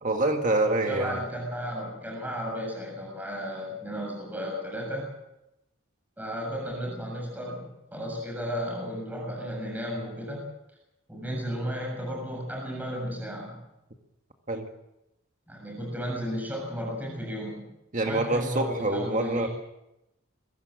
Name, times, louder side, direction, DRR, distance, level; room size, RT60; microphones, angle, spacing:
voice 1, 0.0-1.2 14.5-14.7 17.9-19.5, right 2 dB, 35° right, 4 dB, 1.9 m, -26 dB
voice 2, 0.8-5.1 6.2-10.4 11.1-13.6 15.5-17.6 18.0-19.5, equal, 10° right, -1 dB, 7.2 m, -34 dB
22.5 x 17.0 x 7.7 m, 0.87 s
head